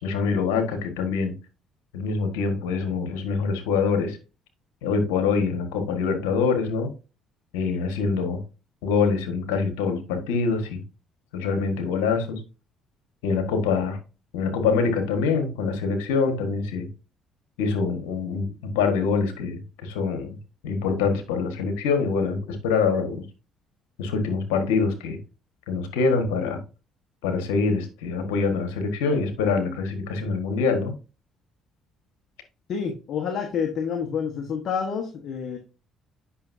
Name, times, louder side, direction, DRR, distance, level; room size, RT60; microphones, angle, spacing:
voice 1, 0.0-1.3 1.9-4.2 4.8-6.9 7.5-8.4 8.8-10.8 11.3-12.4 13.2-14.0 14.3-16.9 17.6-20.4 20.6-23.2 24.0-25.2 25.7-26.6 27.2-30.9, left 5 dB, 90° left, 6 dB, 1.5 m, -25 dB
voice 2, 32.7-35.6, left 6 dB, 60° left, 4 dB, 1.3 m, -28 dB
8.6 x 6.0 x 2.7 m, 0.32 s
supercardioid pair, 65°, 0 cm